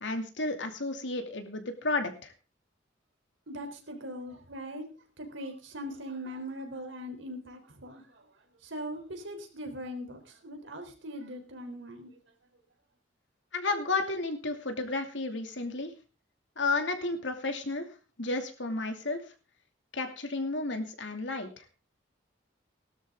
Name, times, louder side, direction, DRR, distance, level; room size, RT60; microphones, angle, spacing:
voice 1, 0.0-2.3 13.5-15.9 16.6-17.9 18.2-19.2 19.9-21.6, left 3 dB, 75° left, 6 dB, 2.5 m, -32 dB
voice 2, 3.5-4.9 5.2-8.3 8.6-12.2, equal, 80° right, 5 dB, 3.7 m, -41 dB
17.5 x 12.5 x 3.7 m, 0.33 s
head